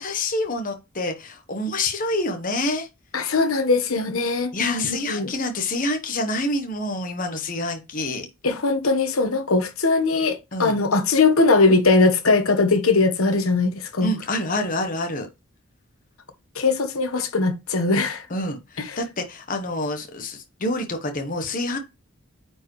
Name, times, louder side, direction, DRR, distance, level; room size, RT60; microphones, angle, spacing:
voice 1, 0.0-2.9 4.5-8.3 10.5-10.8 14.0-15.3 18.3-21.8, left 2 dB, 40° left, 1.0 m, -27 dB
voice 2, 3.1-5.3 8.4-14.1 16.5-18.3 18.8-19.0, left 3 dB, 70° left, 1.2 m, -20 dB
9.1 x 4.6 x 3.1 m
head